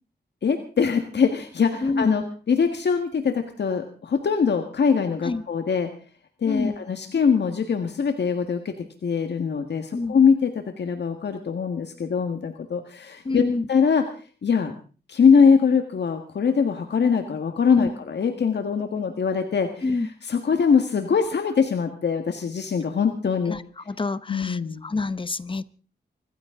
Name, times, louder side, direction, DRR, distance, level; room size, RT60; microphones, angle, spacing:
voice 1, 0.4-5.9 6.4-8.7 9.0-10.5 10.8-14.0 14.4-14.7 15.1-23.6 24.3-24.8, left 6 dB, 75° left, 1.7 m, -22 dB
voice 2, 1.8-2.1 5.2-5.4 6.5-6.7 9.9-10.1 13.3-13.6 17.7-17.9 19.8-20.1 23.5-23.6 23.9-24.6 24.8-25.6, left 3 dB, 30° left, 0.8 m, -26 dB
25.0 x 14.5 x 3.8 m
wide cardioid pair, 115°, 18 cm